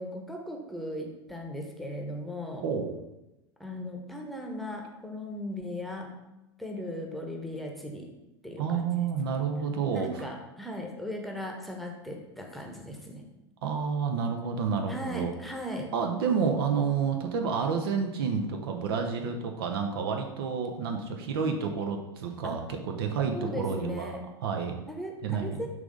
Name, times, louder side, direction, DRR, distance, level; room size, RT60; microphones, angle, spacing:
voice 1, 0.0-2.7 3.6-6.1 6.6-8.1 8.4-8.9 9.9-13.2 14.9-15.9 22.4-22.6 23.3-24.2 24.9-25.7, left 1 dB, ahead, 1 dB, 1.1 m, -37 dB
voice 2, 2.6-2.9 8.6-10.3 13.6-15.3 15.9-24.1 24.4-24.8 25.2-25.7, right 6 dB, 55° right, 4 dB, 0.7 m, -29 dB
6.0 x 3.5 x 5.1 m, 0.96 s
figure-of-eight pair, 85°, 14 cm